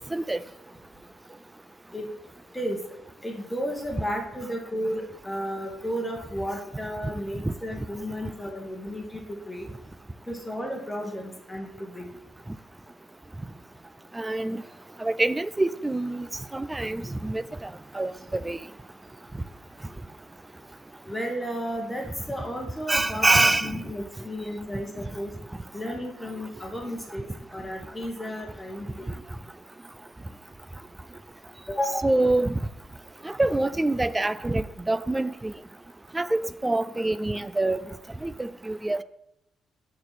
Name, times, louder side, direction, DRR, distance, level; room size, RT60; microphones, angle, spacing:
voice 1, 3.2-9.7 10.3-12.1 21.0-25.3 25.7-27.2 27.5-29.1 31.7-32.1, equal, 10° left, 1.7 m, -33 dB
voice 2, 14.1-14.6 15.0-16.3 16.5-17.7 17.9-18.6 22.9-23.8 32.0-32.6 33.2-35.5 36.1-37.8 38.2-39.0, right 2 dB, 15° right, 0.4 m, -25 dB
13.5 x 4.4 x 4.2 m
cardioid pair, 90°, 0 cm